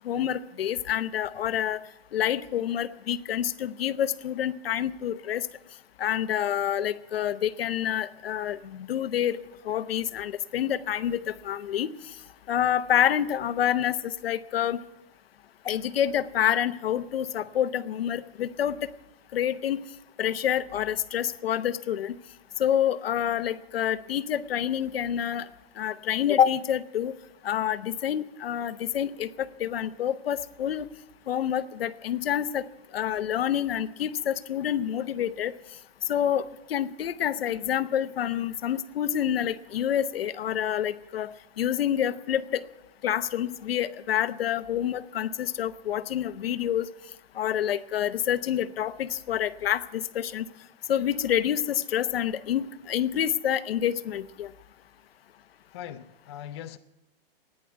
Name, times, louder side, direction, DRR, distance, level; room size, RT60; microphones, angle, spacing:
voice 1, 0.0-1.8 2.1-5.5 6.0-9.4 9.6-11.9 12.5-14.8 15.6-18.8 19.3-19.8 20.2-22.2 22.6-25.5 25.8-27.1 27.4-30.9 31.3-32.7 32.9-35.5 36.1-42.6 43.0-46.9 47.4-50.5 50.9-54.5, left 10 dB, 70° left, 0.9 m, -27 dB
voice 2, 55.7-56.8, left 10 dB, 25° left, 0.5 m, -40 dB
14.5 x 10.0 x 9.2 m
hypercardioid pair, 170°, 31 cm